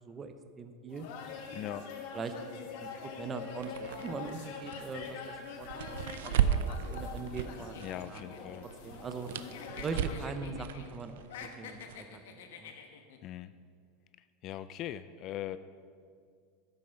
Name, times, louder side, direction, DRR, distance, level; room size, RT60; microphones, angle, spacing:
voice 1, 0.1-1.1 2.1-2.3 2.8-2.9 3.2-7.8 8.1-8.2 8.8-9.3 9.8-12.7, right 4 dB, 20° right, 8 dB, 0.6 m, -41 dB
sound 1, 0.9-10.3, left 5 dB, 60° left, 1.4 m, -44 dB
voice 2, 1.5-1.9 7.8-8.7 13.2-13.5 14.4-15.6, left 12 dB, 35° left, 14 dB, 0.3 m, -40 dB
sound 2, 3.5-8.2 8.5-12.0, right 9 dB, 85° right, 0.5 m, -35 dB
sound 3, 7.4-9.2 9.5-10.9 11.2-13.2, left 7 dB, 80° left, 1.1 m, -48 dB
11.5 x 7.7 x 5.5 m, 2.1 s
supercardioid pair, 155°, 0 cm